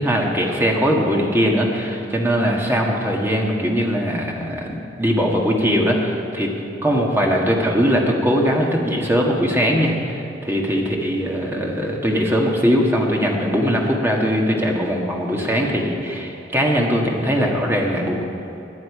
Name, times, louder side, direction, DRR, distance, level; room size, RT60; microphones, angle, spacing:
voice 1, 0.0-6.5 6.8-18.2, equal, 10° right, -1 dB, 1.6 m, -20 dB
18.5 x 10.0 x 4.9 m, 2.8 s
head